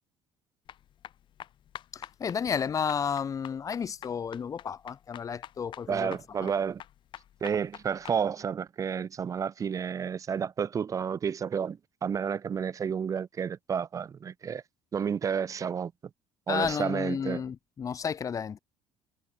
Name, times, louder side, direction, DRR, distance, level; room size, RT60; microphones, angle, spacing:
sound 1, 0.7-8.2, left 11 dB, 55° left, 3.7 m, -47 dB
voice 1, 1.9-6.5 16.5-18.6, left 7 dB, 35° left, 1.2 m, -32 dB
voice 2, 5.9-6.8 7.4-14.6 14.9-15.9 16.5-17.4, right 7 dB, 35° right, 0.8 m, -31 dB
cardioid pair, 105°, 10 cm